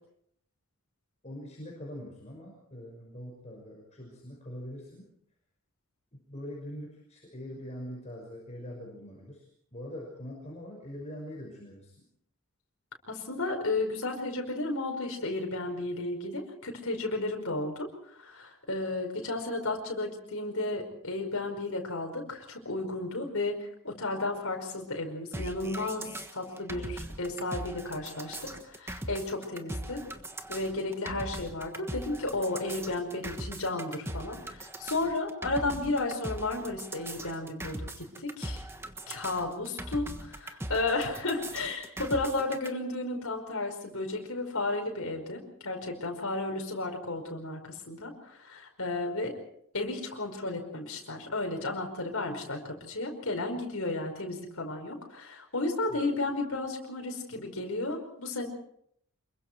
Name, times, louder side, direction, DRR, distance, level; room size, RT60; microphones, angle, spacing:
voice 1, 1.2-5.1 6.1-12.0 55.9-56.1, equal, 30° left, -2 dB, 5.9 m, -43 dB
voice 2, 13.1-23.6 23.8-30.0 30.5-38.6 39.1-49.4 49.7-58.5, left 2 dB, 70° left, 2 dB, 5.1 m, -33 dB
sound 1, 25.3-42.7, right 1 dB, 10° right, 1.4 m, -40 dB
26.5 x 23.0 x 4.7 m, 0.69 s
head